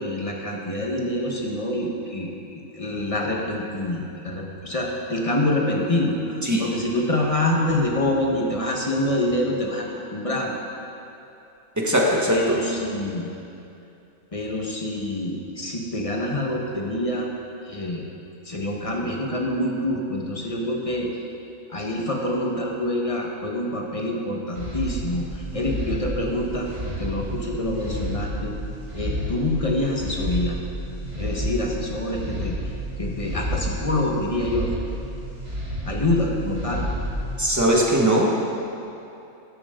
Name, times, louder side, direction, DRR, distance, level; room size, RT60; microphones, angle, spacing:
voice 1, 0.0-10.5 12.3-13.3 14.3-17.3 17.6-18.1 18.4-21.1 21.7-28.5 28.9-30.6 31.1-32.5 33.0-34.7 35.8-36.9, left 1 dB, 25° left, -1 dB, 1.4 m, -26 dB
voice 2, 11.8-12.6 37.4-38.3, right 1 dB, 10° right, -3 dB, 1.5 m, -20 dB
sound 1, 24.5-37.7, equal, 30° right, 2.7 m, -31 dB
12.5 x 12.0 x 3.8 m, 2.8 s
omnidirectional pair, 1.5 m